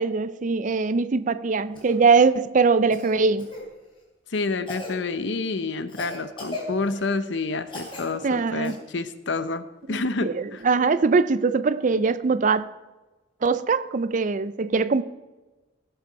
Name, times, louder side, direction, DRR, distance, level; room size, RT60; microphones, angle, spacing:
voice 1, 0.0-3.5 8.2-8.8 9.9-12.7 13.4-15.0, right 4 dB, 40° right, 0.4 m, -22 dB
Cough, 1.7-2.0 2.9-3.6 4.7-5.0 5.9-7.1 7.7-8.1 8.6-8.7 10.6-10.7, left 2 dB, 25° left, 3.4 m, -37 dB
voice 2, 4.3-10.6, left 3 dB, 70° left, 0.8 m, -29 dB
17.0 x 7.8 x 4.6 m
head